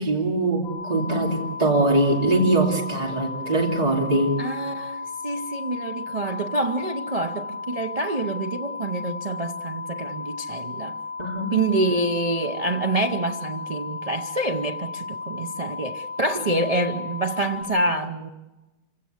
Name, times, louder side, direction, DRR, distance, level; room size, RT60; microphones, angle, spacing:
voice 1, 0.0-4.3 11.2-11.5, right 2 dB, 20° right, 2.9 m, -22 dB
sound 1, 0.6-17.6, left 4 dB, 40° left, 6.7 m, -35 dB
voice 2, 4.4-11.0 11.5-18.3, right 2 dB, 60° right, 0.3 m, -27 dB
27.0 x 16.5 x 8.0 m
omnidirectional pair, 2.0 m